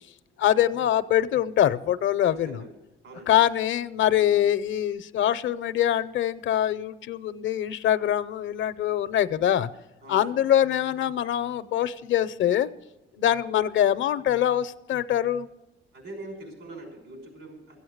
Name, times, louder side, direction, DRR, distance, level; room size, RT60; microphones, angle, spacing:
voice 1, 0.4-2.6 3.3-9.7 10.1-12.7 13.2-15.5, left 11 dB, 70° left, 0.6 m, -24 dB
voice 2, 2.2-2.8 3.0-3.3 10.0-10.4 15.9-17.8, right 2 dB, 80° right, 5.5 m, -43 dB
14.0 x 8.6 x 7.9 m
cardioid pair, 90°, 20 cm